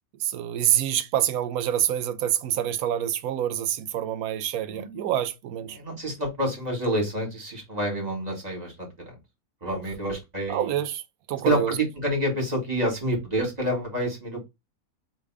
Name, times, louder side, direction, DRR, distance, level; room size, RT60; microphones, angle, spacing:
voice 1, 0.2-5.8 10.5-11.0 11.3-11.8, right 11 dB, 90° right, 1.1 m, -26 dB
voice 2, 4.7-5.1 5.7-8.9 9.6-10.7 11.4-14.5, right 1 dB, 30° right, 2.0 m, -28 dB
3.4 x 3.2 x 4.7 m
omnidirectional pair, 1.5 m